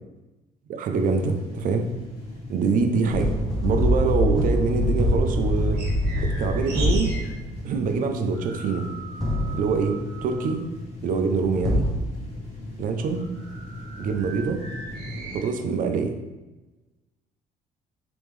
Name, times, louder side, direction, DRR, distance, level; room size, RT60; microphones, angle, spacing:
voice 1, 0.7-1.9 2.5-3.3 3.6-5.8 6.2-7.1 7.6-8.9 9.5-10.6 11.0-11.9 12.8-13.2 14.0-14.6 15.3-16.2, right 5 dB, 55° right, 6 dB, 0.5 m, -25 dB
sound 1, 0.9-15.2, left 2 dB, 40° left, 1.2 m, -39 dB
sound 2, 3.1-7.8 9.2-10.1 11.6-12.0, equal, 5° left, 0.6 m, -24 dB
sound 3, 5.0-7.4 7.6-10.7 11.2-15.4, right 3 dB, 80° right, 1.0 m, -39 dB
3.5 x 3.0 x 3.2 m, 1.1 s
cardioid pair, 110°, 17 cm